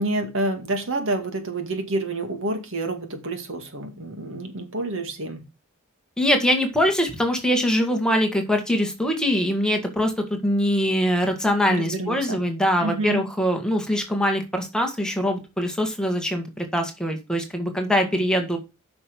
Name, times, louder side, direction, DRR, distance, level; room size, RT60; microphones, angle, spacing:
voice 1, 0.0-5.4 11.7-12.4 12.8-13.2, right 2 dB, 65° right, 2.2 m, -28 dB
voice 2, 6.2-18.6, equal, 5° left, 1.8 m, -23 dB
9.3 x 6.1 x 5.3 m
head